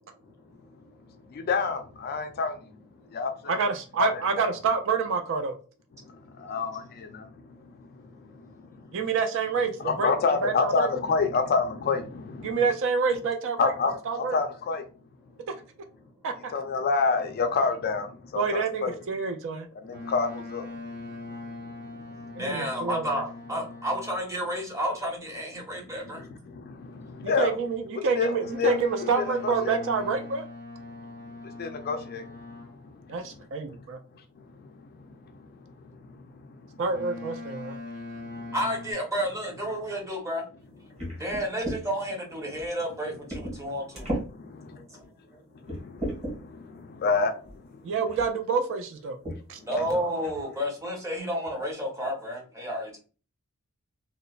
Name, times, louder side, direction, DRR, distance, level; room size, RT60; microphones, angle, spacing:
voice 1, 1.3-2.6 3.1-3.6 4.0-4.1 4.4-4.5 6.1-8.9 9.8-12.6 13.6-14.8 16.5-18.9 19.8-20.7 21.6-22.2 25.8-27.5 28.2-28.8 29.2-29.8 31.4-33.4 34.4-36.8 38.2-38.5 41.0-41.2 43.6-43.7 44.3-44.7 45.6-47.9 49.6-49.9, left 4 dB, 45° left, 0.4 m, -30 dB
voice 2, 3.5-5.5 8.9-10.1 10.4-10.9 12.4-13.7 14.1-14.4 16.2-16.5 18.3-19.7 22.4-23.2 27.4-30.4 33.1-34.0 36.8-37.8 47.8-49.2 49.5-49.6, right 5 dB, 60° right, 0.4 m, -27 dB
Boat Water vehicle, 19.9-24.4 28.4-32.9 36.9-38.9, left 2 dB, 85° right, 1.2 m, -41 dB
voice 3, 22.4-26.3 38.5-40.5 41.2-44.1 49.6-53.0, equal, 15° right, 0.8 m, -31 dB
sound 1, 41.0-41.8 42.6-42.7 43.3-43.6 43.9-44.3 45.0-45.1 45.7-46.4 47.4-47.6 48.1-48.3 49.2-49.4 49.8-49.9 50.2-50.6, equal, 30° right, 1.3 m, -34 dB
3.0 x 2.0 x 2.3 m
head